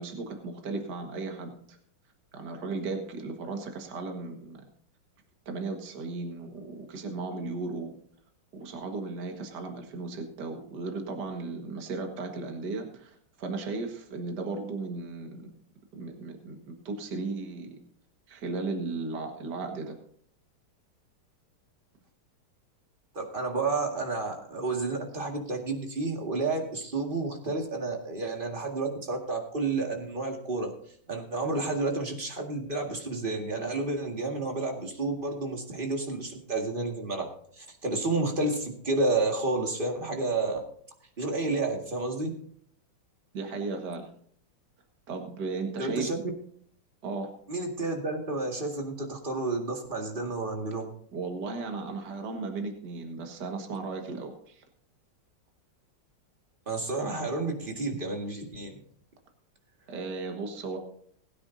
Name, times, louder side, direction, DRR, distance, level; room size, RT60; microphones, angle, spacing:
voice 1, 0.0-1.8 2.3-4.6 5.5-8.0 8.5-15.5 15.9-17.7 18.3-19.9 43.3-44.1 45.1-46.1 47.0-47.3 51.1-54.6 59.9-60.8, right 3 dB, 55° right, 4 dB, 2.2 m, -35 dB
voice 2, 23.1-30.7 31.1-40.6 41.2-42.3 45.8-46.2 47.5-50.9 56.7-58.8, right 3 dB, 25° right, 2 dB, 2.0 m, -30 dB
20.5 x 9.7 x 2.7 m, 0.62 s
omnidirectional pair, 2.3 m